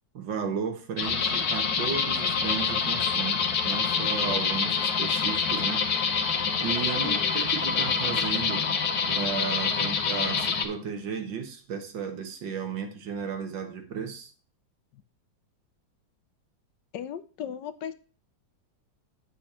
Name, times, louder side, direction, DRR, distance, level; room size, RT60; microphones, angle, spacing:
voice 1, 0.1-5.9 6.6-8.7 9.1-14.3, right 6 dB, 80° right, 2.1 m, -34 dB
sound 1, 1.0-10.6, left 6 dB, 55° left, 1.5 m, -26 dB
voice 2, 7.0-7.4 14.9-15.0 16.9-17.9, left 9 dB, 70° left, 1.3 m, -37 dB
8.4 x 6.4 x 4.3 m
omnidirectional pair, 2.0 m